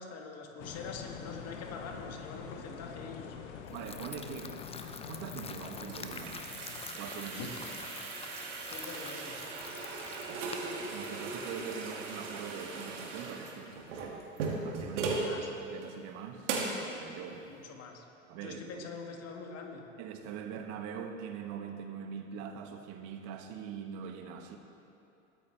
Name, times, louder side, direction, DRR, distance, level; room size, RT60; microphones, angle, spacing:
voice 1, 0.0-3.4 7.3-8.3 8.7-9.4 15.1-15.5 17.5-18.0 18.4-19.8, left 4 dB, 40° left, 2 dB, 2.0 m, -44 dB
sound 1, 0.6-7.2, left 7 dB, 65° left, 1.2 m, -46 dB
sound 2, 3.7-11.6, left 5 dB, 15° left, 0.7 m, -47 dB
voice 2, 3.7-6.4 6.9-7.5 9.8-14.2 14.6-15.3 15.7-17.5 18.3-18.6 20.0-24.6, right 7 dB, 50° right, 6 dB, 1.4 m, -43 dB
sound 3, 5.5-15.3 15.8-15.9 16.5-16.8, right 4 dB, 70° right, 2.3 m, -38 dB
21.0 x 9.4 x 3.4 m, 2.7 s
figure-of-eight pair, 80°, 37 cm